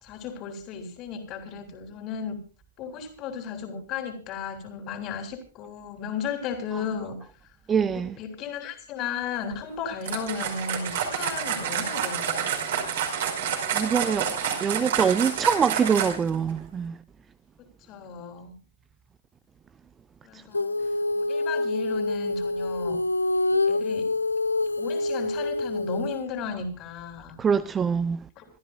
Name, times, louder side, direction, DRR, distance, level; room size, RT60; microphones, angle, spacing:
voice 1, 0.0-2.4 2.8-7.2 7.9-13.1 17.9-18.5 20.2-20.7 21.2-23.0 23.6-24.1 24.8-27.4 28.4-28.5, left 6 dB, 30° left, 3.3 m, -35 dB
voice 2, 7.7-8.2 13.7-14.3 14.6-17.0 20.3-20.4 27.4-28.2, right 6 dB, 15° right, 0.6 m, -24 dB
sound 1, 10.0-16.4, right 8 dB, 55° right, 5.0 m, -29 dB
Female singing, 20.5-26.3, left 2 dB, 80° left, 0.6 m, -26 dB
28.0 x 13.0 x 2.4 m
figure-of-eight pair, 110°, 0 cm